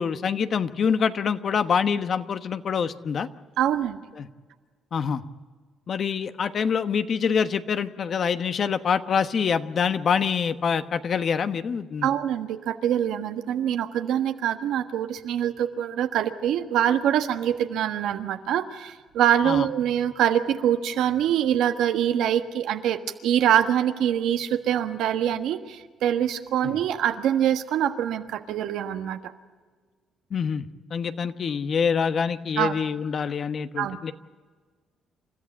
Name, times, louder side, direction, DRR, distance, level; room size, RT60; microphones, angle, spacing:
voice 1, 0.0-3.3 4.2-4.3 4.9-5.2 5.9-12.1 19.4-19.7 26.6-26.8 30.3-34.1, left 6 dB, 55° left, 10 dB, 1.2 m, -25 dB
voice 2, 3.6-4.0 12.0-29.2 32.6-32.7 33.8-34.0, right 10 dB, 85° right, 7 dB, 1.4 m, -24 dB
29.0 x 14.0 x 8.8 m, 1.5 s
cardioid pair, 90°, 0 cm